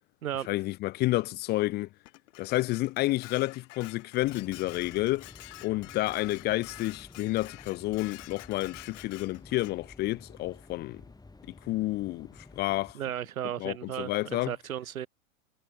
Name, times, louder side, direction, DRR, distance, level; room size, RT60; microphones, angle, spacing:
voice 1, 0.5-1.9 2.4-5.3 5.6-11.0 11.7-13.0 13.6-14.5, left 18 dB, 25° left, 0.4 m, -30 dB
Dishes pots and pans, 2.1-9.8, left 19 dB, 60° left, 4.1 m, -48 dB
sound 1, 4.2-12.9, left 3 dB, 10° left, 5.0 m, -52 dB
voice 2, 12.9-15.1, right 10 dB, 85° right, 0.9 m, -35 dB
hypercardioid pair, 100°, 41 cm